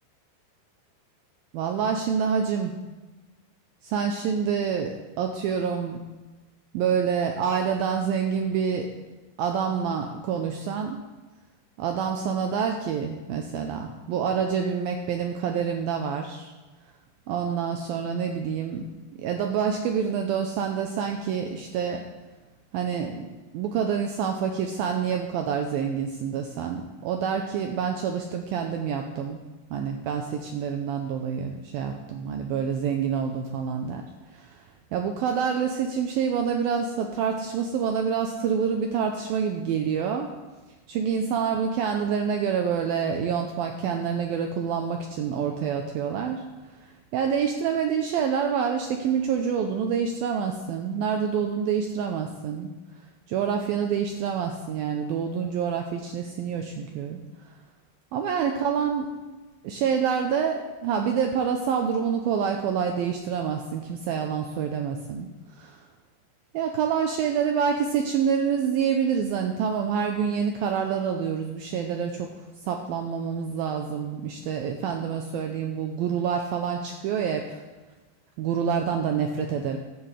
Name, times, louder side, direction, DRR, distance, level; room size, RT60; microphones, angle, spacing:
voice 1, 1.5-2.7 3.8-6.0 6.7-8.9 9.4-11.0 11.8-16.5 17.3-18.9 19.2-22.0 22.7-23.3 23.5-29.4 29.7-34.0 34.3-34.6 34.9-40.3 40.9-46.4 46.8-52.7 53.3-57.2 58.1-59.1 59.6-65.3 65.5-65.8 66.5-72.3 72.6-77.6 78.4-79.8, right 7 dB, 90° right, 4 dB, 2.1 m, -27 dB
15.0 x 11.5 x 3.3 m, 1.2 s
omnidirectional pair, 5.1 m